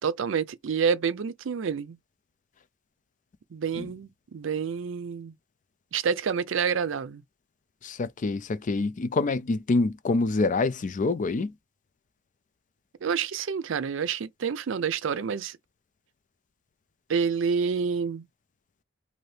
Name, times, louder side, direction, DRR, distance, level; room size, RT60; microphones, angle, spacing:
voice 1, 0.0-2.0 3.5-5.3 5.9-7.2 13.0-15.6 17.1-18.3, right 6 dB, 80° right, 0.4 m, -28 dB
voice 2, 7.8-11.5, left 3 dB, 40° left, 0.4 m, -26 dB
2.7 x 2.7 x 3.2 m
head